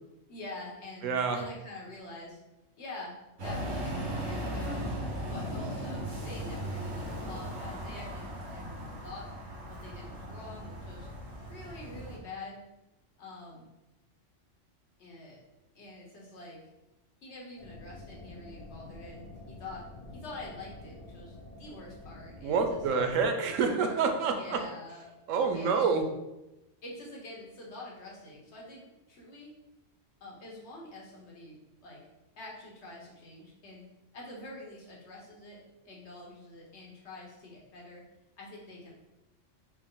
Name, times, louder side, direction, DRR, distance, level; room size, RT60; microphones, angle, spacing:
voice 1, 0.3-2.4 2.8-3.1 3.4-4.9 5.3-8.3 8.5-9.2 9.7-11.1 11.5-12.6 13.2-13.7 15.0-15.4 15.7-16.6 17.2-19.8 20.1-23.1 24.3-25.1 25.5-25.8 26.8-29.5 30.2-31.6 31.8-32.0 32.4-33.8 34.1-35.6 35.8-38.0 38.4-38.9, left 2 dB, 65° left, -3 dB, 1.2 m, -46 dB
voice 2, 1.0-1.4 22.4-24.6 25.3-26.0, right 5 dB, 90° right, 5 dB, 1.0 m, -27 dB
sound 1, 3.4-12.2, equal, 70° right, 1.3 m, -37 dB
sound 2, 17.6-23.3, left 2 dB, 40° left, 0.5 m, -48 dB
4.5 x 2.0 x 3.7 m, 0.98 s
omnidirectional pair, 1.3 m